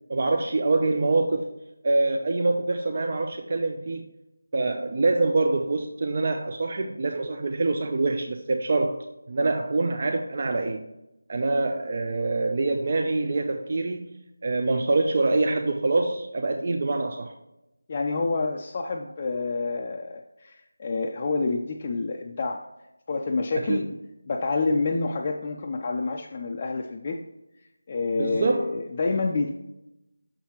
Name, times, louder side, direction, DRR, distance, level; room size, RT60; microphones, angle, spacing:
voice 1, 0.1-1.5 1.8-4.1 4.5-10.8 11.3-17.3 23.7-23.8 28.2-28.7, right 3 dB, 40° right, 4 dB, 0.5 m, -25 dB
voice 2, 17.9-22.7 23.1-23.9 24.3-27.2 27.9-29.5, left 3 dB, 25° left, 0 dB, 0.4 m, -28 dB
6.4 x 5.6 x 2.9 m, 0.93 s
figure-of-eight pair, 170°, 0 cm